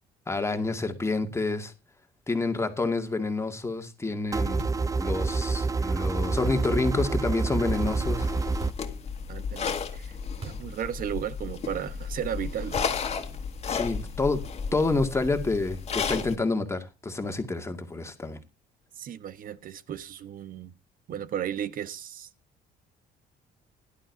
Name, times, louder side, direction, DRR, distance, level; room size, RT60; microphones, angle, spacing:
voice 1, 0.3-1.7 2.3-4.7 5.0-8.3 13.7-14.4 14.7-18.4, left 3 dB, 15° left, 2.2 m, -28 dB
sound 1, 4.3-8.7, right 4 dB, 20° right, 0.6 m, -27 dB
sound 2, 4.6-5.0 6.6-7.0 8.6-9.0 10.4-10.8 11.1-11.2 12.8-13.1, right 3 dB, 35° right, 3.7 m, -42 dB
sound 3, 7.7-16.3, left 6 dB, 40° left, 2.0 m, -33 dB
voice 2, 9.3-10.2 10.4-13.0 18.9-20.7 21.1-22.3, right 9 dB, 55° right, 1.2 m, -35 dB
17.0 x 11.5 x 2.7 m
cardioid pair, 110°, 17 cm